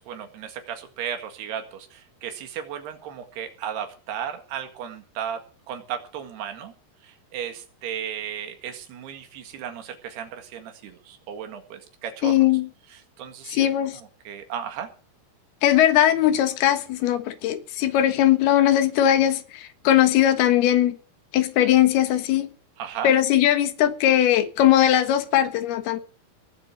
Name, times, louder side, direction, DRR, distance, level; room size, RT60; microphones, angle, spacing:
voice 1, 0.0-5.4 5.7-6.7 7.0-12.3 12.9-13.7 13.9-14.9 22.8-23.1, right 8 dB, 90° right, 3.9 m, -35 dB
voice 2, 12.2-12.7 13.5-14.0 15.6-21.0 21.3-22.5 23.0-26.0, left 11 dB, 80° left, 3.4 m, -20 dB
19.0 x 7.6 x 6.4 m
omnidirectional pair, 4.6 m